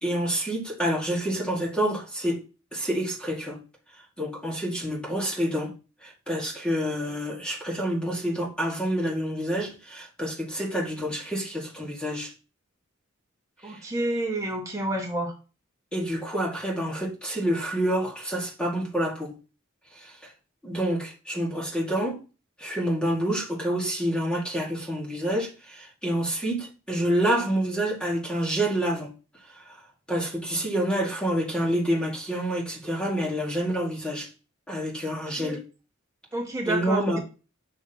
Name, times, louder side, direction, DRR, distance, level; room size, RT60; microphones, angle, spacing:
voice 1, 0.0-2.4 2.7-3.6 4.2-5.7 6.0-12.3 13.6-13.8 15.9-19.3 20.0-20.3 20.6-22.2 22.6-29.1 30.1-34.3 34.7-35.6 36.7-37.2, equal, 5° left, 2.0 m, -28 dB
voice 2, 13.6-15.3 35.4-35.6 36.3-37.2, right 2 dB, 15° right, 1.5 m, -29 dB
7.4 x 6.3 x 2.9 m
head